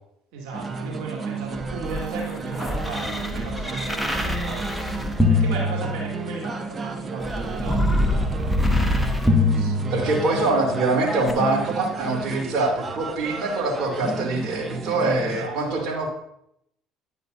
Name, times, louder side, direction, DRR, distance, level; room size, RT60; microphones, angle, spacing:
voice 1, 0.3-4.6 5.3-7.8 15.2-15.8, right 3 dB, 75° right, -3 dB, 2.5 m, -36 dB
sound 1, 0.5-15.5, right 4 dB, 35° right, 1.0 m, -32 dB
sound 2, 1.6-6.5 7.2-10.5 11.3-11.4, left 2 dB, ahead, 1.2 m, -24 dB
voice 2, 9.6-16.1, right 2 dB, 60° right, -1 dB, 2.7 m, -24 dB
10.5 x 9.4 x 2.7 m, 0.74 s
supercardioid pair, 80°, 0 cm